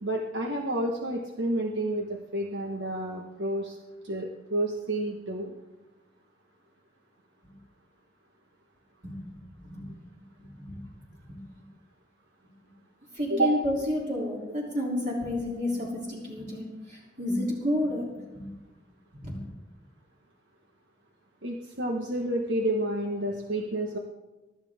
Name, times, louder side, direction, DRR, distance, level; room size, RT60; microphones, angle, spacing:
voice 1, 0.0-3.8 4.0-5.5 13.3-13.5 21.4-24.0, right 1 dB, 90° right, 1 dB, 1.5 m, -30 dB
voice 2, 10.4-10.8 11.3-11.4 13.1-18.0 18.3-18.4 19.2-19.4, left 1 dB, 45° right, -5 dB, 3.4 m, -30 dB
23.5 x 12.5 x 3.6 m, 1.1 s
head